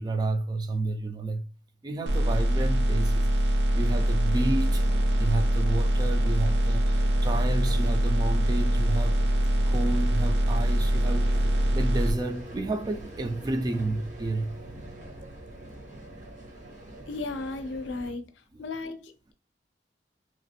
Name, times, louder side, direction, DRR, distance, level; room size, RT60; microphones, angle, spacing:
voice 1, 0.0-1.5 1.8-3.3 3.7-4.9 5.2-9.2 9.7-11.3 11.7-14.6, right 2 dB, 20° right, 0.3 m, -31 dB
sound 1, 2.1-12.1, right 1 dB, 80° right, 0.6 m, -23 dB
sound 2, 3.7-18.1, right 1 dB, 45° right, 0.9 m, -44 dB
voice 2, 17.1-18.3 18.6-19.3, left 3 dB, 90° left, 0.5 m, -35 dB
3.0 x 2.5 x 2.7 m
head